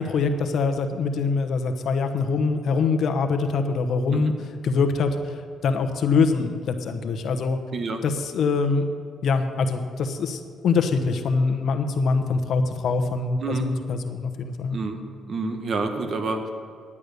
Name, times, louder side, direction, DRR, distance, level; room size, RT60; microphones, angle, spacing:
voice 1, 0.0-4.3 4.6-5.1 5.6-7.6 8.0-8.8 9.2-14.8, left 4 dB, 65° left, 6 dB, 1.1 m, -24 dB
voice 2, 15.3-16.5, right 3 dB, 50° right, 6 dB, 1.4 m, -28 dB
11.0 x 8.6 x 6.8 m, 2.2 s
cardioid pair, 90°, 0 cm